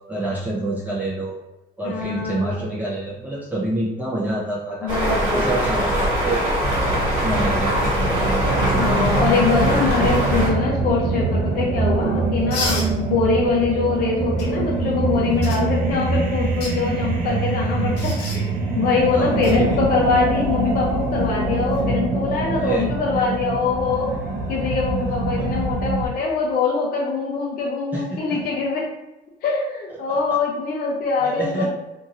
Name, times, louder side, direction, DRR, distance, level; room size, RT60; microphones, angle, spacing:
voice 1, 0.1-1.4 1.8-4.9 5.3-6.4 6.7-7.9 19.1-19.8 22.5-22.9 25.4-25.5 27.9-28.4 30.1-30.2 31.2-31.7, right 2 dB, 10° right, -6 dB, 0.6 m, -27 dB
voice 2, 1.8-2.6 4.8-6.0 8.6-18.5 18.7-24.1 24.5-28.9 29.4-31.7, left 4 dB, 60° left, -3 dB, 0.6 m, -23 dB
sound 1, 4.9-10.5, right 1 dB, 30° right, 1.4 m, -22 dB
sound 2, 6.6-26.1, right 2 dB, 55° right, 0.6 m, -24 dB
sound 3, 12.5-12.9 14.4-14.5 15.4-15.6 16.4-16.7 18.0-18.4 19.4-19.5 21.6-21.8, left 2 dB, 80° left, 1.0 m, -29 dB
2.8 x 2.7 x 2.5 m, 1.0 s
cardioid pair, 110°, 17 cm